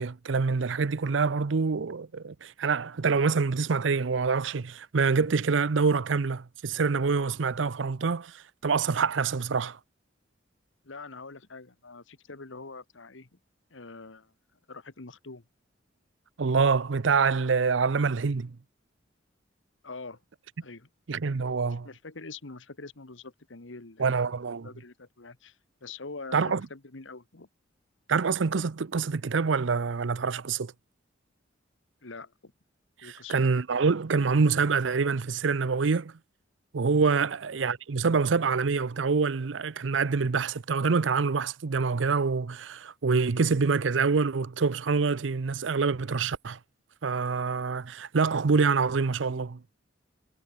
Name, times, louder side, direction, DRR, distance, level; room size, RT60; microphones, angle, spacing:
voice 1, 0.0-9.8 16.4-18.6 21.1-21.9 24.0-24.7 26.3-26.6 28.1-30.7 33.0-36.1 36.7-46.6 47.0-49.6, right 5 dB, 80° right, 0.6 m, -26 dB
voice 2, 10.8-13.4 13.7-14.3 14.7-15.4 19.8-20.2 20.6-20.9 21.7-24.3 24.6-25.6 25.8-27.5 32.0-32.5 33.0-33.4 37.1-37.3, left 3 dB, 85° left, 1.6 m, -44 dB
head